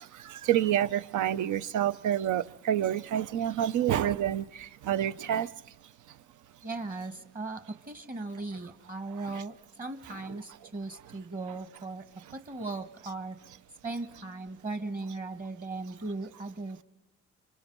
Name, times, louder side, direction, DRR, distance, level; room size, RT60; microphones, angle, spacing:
voice 1, 0.0-5.5 5.8-6.2 9.1-9.4 10.1-10.4 12.2-12.3, right 11 dB, 80° right, 0.8 m, -29 dB
voice 2, 6.6-12.0 12.3-13.4 13.8-16.8, right 3 dB, 30° right, 1.3 m, -38 dB
26.5 x 25.0 x 5.4 m
cardioid pair, 90°, 30 cm